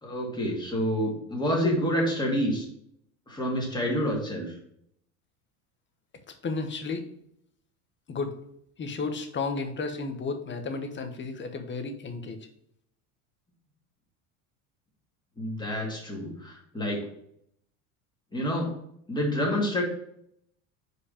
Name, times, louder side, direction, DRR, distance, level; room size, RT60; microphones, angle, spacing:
voice 1, 0.0-2.7 3.3-4.4 15.4-17.0 18.3-18.7 19.1-19.8, equal, 10° left, -2 dB, 2.4 m, -28 dB
voice 2, 6.4-7.1 8.1-8.3 8.8-12.4, left 4 dB, 25° left, 7 dB, 1.1 m, -33 dB
4.9 x 4.9 x 5.0 m, 0.71 s
supercardioid pair, 100°, 43 cm